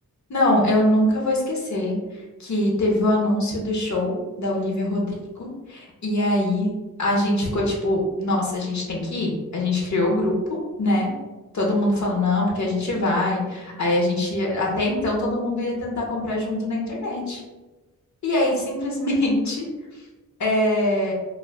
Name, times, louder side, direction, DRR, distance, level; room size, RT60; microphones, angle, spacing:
voice 1, 0.3-1.9 2.4-6.7 7.0-11.1 11.5-17.4 18.2-19.7 20.4-21.1, left 1 dB, 55° left, -2 dB, 0.7 m, -23 dB
2.4 x 2.2 x 3.2 m, 1.2 s
wide cardioid pair, 80°, 33 cm